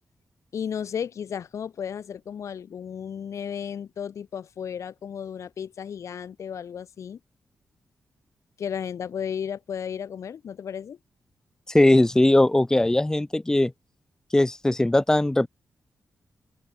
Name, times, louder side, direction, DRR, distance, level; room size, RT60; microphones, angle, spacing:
voice 1, 0.5-7.2 8.6-11.0, left 8 dB, 75° left, 3.0 m, -34 dB
voice 2, 11.7-13.7 14.3-15.5, left 1 dB, 10° left, 1.2 m, -19 dB
open air
wide cardioid pair, 105°, 5 cm